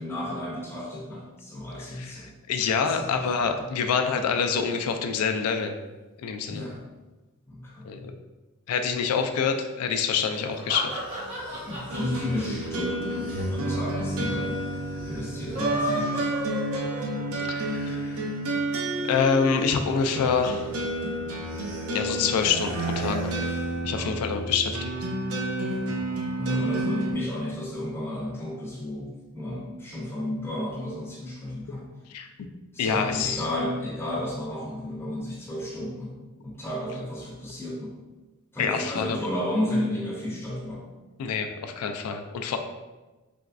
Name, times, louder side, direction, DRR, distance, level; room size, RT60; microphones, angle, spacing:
voice 1, 0.0-2.3 2.8-3.7 6.5-6.8 7.5-8.1 11.6-14.6 15.1-16.3 21.0-21.2 23.9-24.1 25.7-25.9 26.4-31.9 32.7-38.0 38.5-40.8, left 1 dB, 10° left, -8 dB, 0.6 m, -33 dB
voice 2, 1.9-5.7 6.2-6.7 7.8-8.1 8.7-11.0 17.4-18.3 19.0-20.7 21.9-23.3 23.8-24.9 32.1-32.3 32.8-33.4 38.6-39.3 41.2-42.6, left 6 dB, 85° left, 6 dB, 0.3 m, -26 dB
sound 1, 10.3-13.7 14.0-14.1 14.3-14.4 15.3-17.5, right 1 dB, 30° right, 0.8 m, -32 dB
sound 2, 10.8-17.0 17.3-23.8, right 1 dB, 55° right, 1.1 m, -44 dB
sound 3, 11.9-27.1, right 1 dB, 70° right, 0.5 m, -30 dB
3.4 x 3.0 x 2.5 m, 1.2 s
head